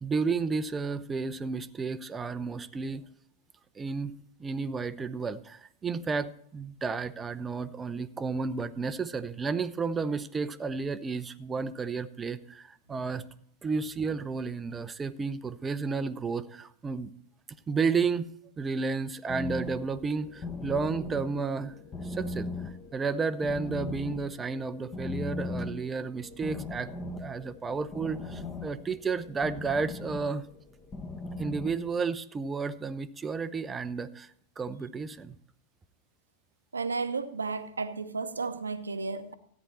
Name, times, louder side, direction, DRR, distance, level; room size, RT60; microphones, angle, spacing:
voice 1, 0.0-3.1 3.8-4.1 4.4-13.2 13.6-17.1 17.7-18.3 18.6-21.7 22.0-22.5 22.9-26.9 27.2-30.5 31.4-34.3 34.6-35.3, right 4 dB, 15° right, 0.6 m, -32 dB
sound 1, 19.3-32.0, left 2 dB, 20° left, 1.5 m, -39 dB
voice 2, 36.7-39.3, right 4 dB, 75° right, 0.8 m, -33 dB
13.5 x 9.4 x 4.2 m
figure-of-eight pair, 90°, 0 cm